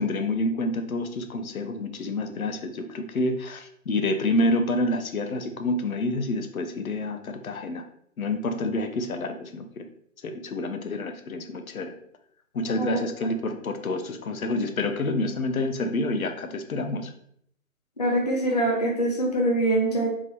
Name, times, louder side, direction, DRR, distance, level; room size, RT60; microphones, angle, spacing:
voice 1, 0.0-7.8 8.2-9.9 10.2-11.9 12.5-17.1, left 2 dB, 85° left, 7 dB, 0.7 m, -28 dB
voice 2, 18.0-20.1, right 1 dB, 30° left, -1 dB, 0.5 m, -24 dB
3.5 x 3.0 x 3.4 m, 0.69 s
figure-of-eight pair, 160°, 41 cm